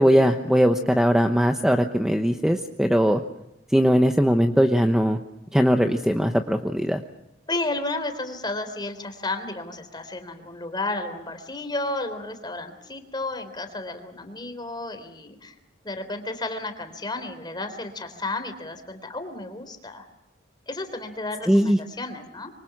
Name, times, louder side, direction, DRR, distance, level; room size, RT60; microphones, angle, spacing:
voice 1, 0.0-3.2 3.7-5.2 5.5-7.0 21.5-21.8, equal, 5° right, 5 dB, 1.0 m, -20 dB
voice 2, 7.5-15.5 15.8-20.0 20.7-22.5, left 2 dB, 25° left, 8 dB, 3.6 m, -32 dB
26.0 x 24.5 x 6.1 m, 0.86 s
head